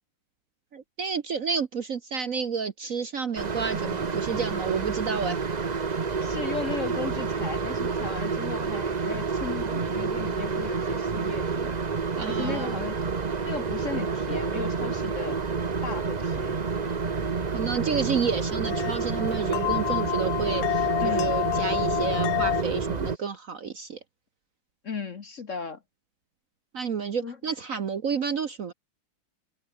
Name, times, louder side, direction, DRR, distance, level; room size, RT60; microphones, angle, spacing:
voice 1, 0.7-5.4 12.2-12.8 17.5-24.0 26.7-28.7, right 6 dB, 50° right, 1.2 m, -30 dB
sound 1, 3.4-23.2, right 5 dB, 35° right, 0.7 m, -29 dB
voice 2, 6.2-11.8 12.3-13.1 13.4-15.4 15.8-16.6 21.0-21.3 24.8-25.8 27.2-27.4, left 5 dB, 45° left, 1.4 m, -36 dB
sound 2, 15.0-22.6, left 17 dB, 75° left, 1.3 m, -31 dB
omnidirectional pair, 2.2 m